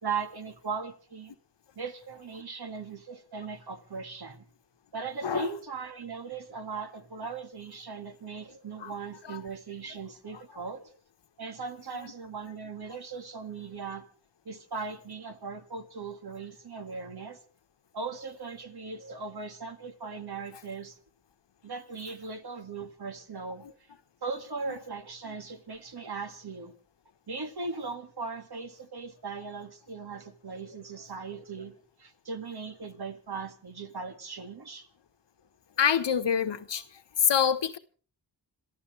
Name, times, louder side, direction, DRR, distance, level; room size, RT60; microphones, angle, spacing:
voice 1, 0.0-1.3 1.8-4.4 4.9-10.9 11.4-14.1 14.5-17.4 17.9-21.0 21.6-23.7 24.2-26.7 27.3-34.9, right 4 dB, 60° right, 2.1 m, -38 dB
voice 2, 35.8-36.8 37.2-37.8, left 8 dB, 70° left, 1.2 m, -26 dB
27.0 x 14.0 x 3.3 m
cardioid pair, 65°, 44 cm